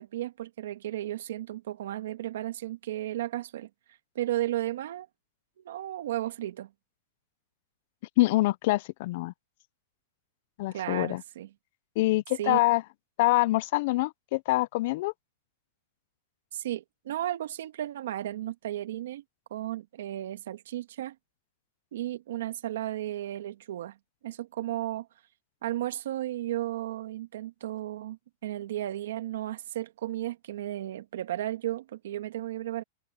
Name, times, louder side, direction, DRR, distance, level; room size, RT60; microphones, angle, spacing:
voice 1, 0.0-3.7 4.2-5.1 5.6-6.7 10.7-11.5 12.4-12.6 16.5-19.2 19.5-21.2 21.9-24.0 24.2-25.1 25.6-32.8, right 13 dB, 70° right, 1.9 m, -34 dB
voice 2, 8.2-9.3 10.6-11.2 12.0-12.8 13.2-15.1, left 19 dB, 45° left, 0.4 m, -25 dB
supercardioid pair, 165°, 0 cm